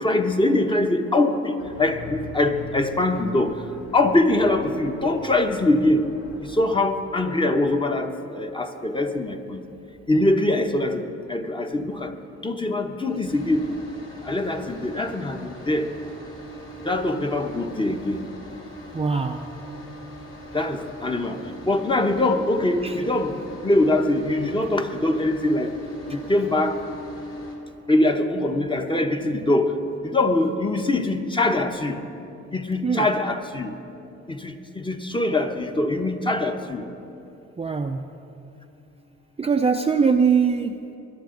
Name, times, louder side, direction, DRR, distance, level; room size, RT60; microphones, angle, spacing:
voice 1, 0.0-3.6 3.9-6.1 6.4-9.6 10.1-12.1 12.4-13.7 14.2-15.9 16.8-18.2 20.5-25.8 26.1-26.8 27.9-32.0 32.5-33.8 34.3-36.9, left 2 dB, 15° left, 5 dB, 1.0 m, -23 dB
sound 1, 1.6-6.6, left 3 dB, 60° left, 1.8 m, -41 dB
sound 2, 13.3-27.6, equal, 40° left, 3.2 m, -40 dB
voice 2, 18.9-19.4 22.8-23.0 32.8-33.1 37.6-38.0 39.4-41.0, right 5 dB, 20° right, 4 dB, 0.5 m, -22 dB
20.5 x 10.5 x 3.9 m, 2.7 s
cardioid pair, 90°, 30 cm